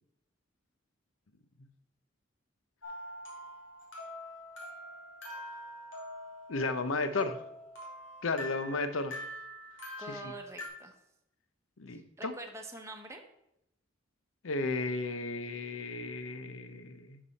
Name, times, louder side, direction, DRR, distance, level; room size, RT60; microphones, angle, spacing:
sound 1, 2.8-10.7, left 1 dB, 65° left, 2.7 m, -45 dB
voice 1, 6.5-7.4 8.2-9.1 10.1-10.3 11.8-12.3 14.4-17.2, left 3 dB, 85° left, 10 dB, 0.8 m, -34 dB
voice 2, 10.0-11.0 11.9-13.2, right 2 dB, 15° right, 2 dB, 0.8 m, -45 dB
11.0 x 4.9 x 4.1 m, 0.81 s
head